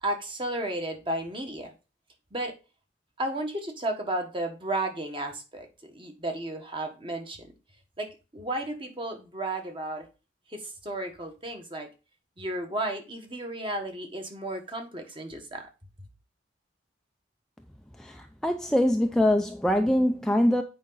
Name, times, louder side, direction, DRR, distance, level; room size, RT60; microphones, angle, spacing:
voice 1, 0.0-1.7 2.3-2.5 3.2-7.5 8.0-10.1 10.5-11.9 12.4-15.7, right 1 dB, 25° right, 1.6 m, -33 dB
voice 2, 18.0-20.6, left 1 dB, 5° left, 0.5 m, -23 dB
8.7 x 5.1 x 4.0 m
head